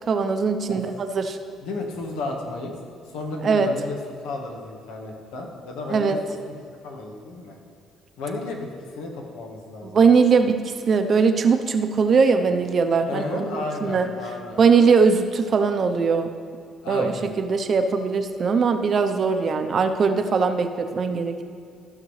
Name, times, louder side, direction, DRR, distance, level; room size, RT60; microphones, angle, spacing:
voice 1, 0.1-1.4 3.4-3.7 5.9-6.2 9.8-14.1 14.6-16.3 16.9-21.4, right 5 dB, 50° right, 8 dB, 0.7 m, -20 dB
voice 2, 1.6-2.7 3.1-4.0 4.2-6.2 6.4-7.6 8.2-8.7 9.0-10.2 13.1-14.6 16.8-17.3, left 2 dB, 90° left, 1 dB, 1.4 m, -33 dB
14.5 x 6.0 x 3.2 m, 2.3 s
supercardioid pair, 80°, 0 cm